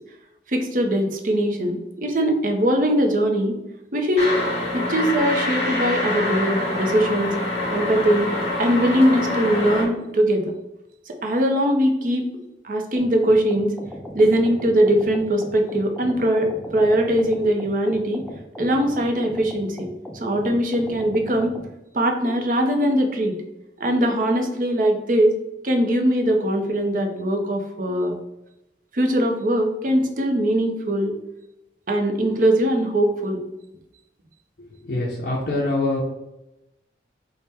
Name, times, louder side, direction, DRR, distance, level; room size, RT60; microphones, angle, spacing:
voice 1, 0.5-3.6 3.9-4.3 4.7-7.3 7.7-8.3 8.6-10.5 11.1-12.2 12.6-13.7 14.1-18.2 18.6-19.9 20.1-21.5 21.9-23.3 23.8-25.3 25.6-28.1 28.9-31.1 31.9-33.4, equal, 50° right, 3 dB, 0.5 m, -21 dB
sound 1, 4.2-9.8, left 1 dB, 35° left, 1.0 m, -25 dB
sound 2, 13.0-21.7, equal, 5° left, 0.3 m, -38 dB
voice 2, 34.8-36.0, left 2 dB, 55° left, -4 dB, 0.5 m, -24 dB
3.5 x 2.1 x 4.2 m, 0.92 s
head